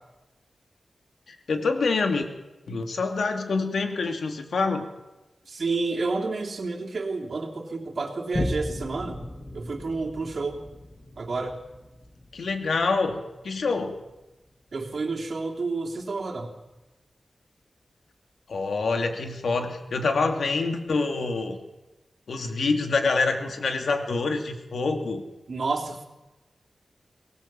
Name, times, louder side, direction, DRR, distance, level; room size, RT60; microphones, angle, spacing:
voice 1, 1.3-2.3 2.7-4.9 12.3-14.0 18.5-21.6 22.3-25.2, left 4 dB, 75° left, 5 dB, 2.5 m, -26 dB
voice 2, 5.5-9.2 9.5-10.6 11.2-11.5 14.7-16.5 25.5-26.1, right 3 dB, 55° right, 2 dB, 3.1 m, -30 dB
Boom, 8.3-15.2 15.8-15.9, left 1 dB, 25° left, 1.8 m, -37 dB
23.5 x 19.0 x 7.5 m, 1.1 s
wide cardioid pair, 135°, 0 cm